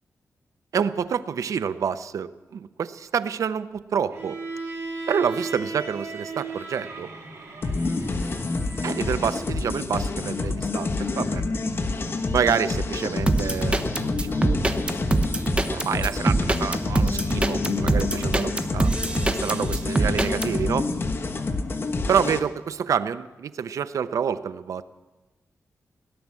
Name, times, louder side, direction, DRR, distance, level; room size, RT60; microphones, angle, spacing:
voice 1, 0.7-4.4 5.1-7.1 8.8-11.4 12.3-14.9 15.7-18.9 19.3-20.9 22.1-24.8, right 7 dB, 75° right, 14 dB, 0.7 m, -28 dB
Bowed string instrument, 4.1-9.3, right 3 dB, 60° right, 3.8 m, -36 dB
sound 1, 7.6-22.4, left 3 dB, 45° left, 1.2 m, -28 dB
sound 2, 13.3-20.5, right 2 dB, 20° right, 1.0 m, -23 dB
17.5 x 11.0 x 7.5 m, 1.1 s
wide cardioid pair, 130°, 6 cm